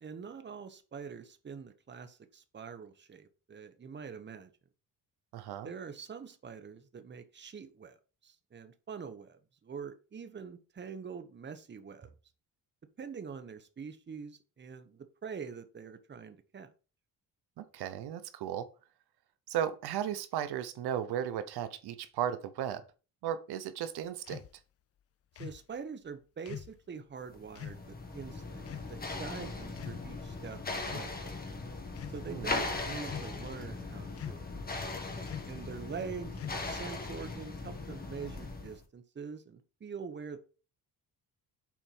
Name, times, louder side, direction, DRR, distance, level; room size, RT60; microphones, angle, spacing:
voice 1, 0.0-4.5 5.6-8.0 8.2-12.1 13.0-16.7 25.4-31.4 32.1-34.4 35.4-40.4, right 6 dB, 30° right, 9 dB, 1.0 m, -45 dB
voice 2, 5.3-5.7 17.6-18.7 19.5-22.8 23.2-24.4 32.3-32.5, right 10 dB, 85° right, 11 dB, 0.9 m, -35 dB
sound 1, 24.3-24.5 25.3-25.6 26.5-26.8 27.5-27.8 28.7-28.9 29.7-30.3 30.8-31.1 31.9-32.2 33.0-33.5 34.1-34.5 35.3-35.6 36.3-36.8, left 9 dB, 40° left, 0.4 m, -44 dB
sound 2, 27.3-38.8, left 3 dB, 25° left, 1.6 m, -39 dB
7.3 x 4.5 x 5.5 m, 0.35 s
cardioid pair, 130°, 38 cm